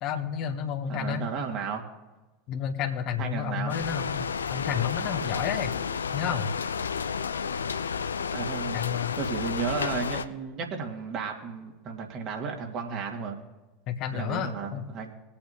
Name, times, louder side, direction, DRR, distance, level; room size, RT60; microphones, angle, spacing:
voice 1, 0.0-1.3 2.5-5.8 6.1-6.5 8.7-9.2 13.9-14.9, left 8 dB, 45° left, 7 dB, 1.2 m, -31 dB
voice 2, 0.9-1.9 3.2-3.8 8.3-8.8 9.2-13.4 14.1-15.1, right 5 dB, 45° right, 2 dB, 2.3 m, -33 dB
sound 1, 3.7-10.2, left 6 dB, 80° left, 0.5 m, -31 dB
21.0 x 8.7 x 2.9 m, 1.1 s
figure-of-eight pair, 80°, 0 cm